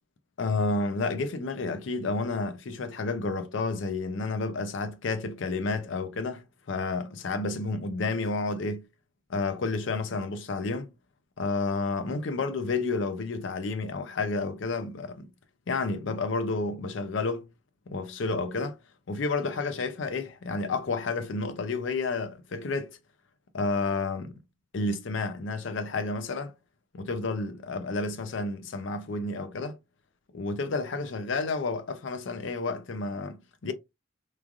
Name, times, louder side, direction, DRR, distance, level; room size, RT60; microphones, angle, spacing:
voice 1, 0.4-8.8 9.3-10.9 11.4-15.3 15.7-17.5 17.9-18.8 19.1-23.0 23.5-24.3 24.7-26.5 26.9-29.8 30.3-33.7, left 3 dB, 65° left, 0.5 m, -30 dB
3.1 x 2.4 x 2.4 m
head